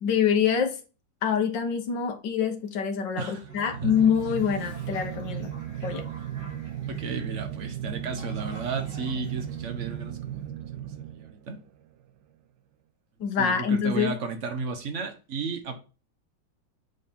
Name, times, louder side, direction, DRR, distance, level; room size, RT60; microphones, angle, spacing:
voice 1, 0.0-0.8 1.2-5.5 5.8-6.0 13.2-14.2, left 7 dB, 70° left, 1.8 m, -25 dB
sound 1, 3.3-11.7, right 11 dB, 80° right, 1.3 m, -36 dB
Toilet flush, 3.5-10.4, equal, 60° right, 4.0 m, -50 dB
voice 2, 6.9-10.5 11.1-11.6 13.4-15.8, right 4 dB, 45° right, 1.4 m, -33 dB
8.3 x 3.7 x 4.3 m
omnidirectional pair, 2.0 m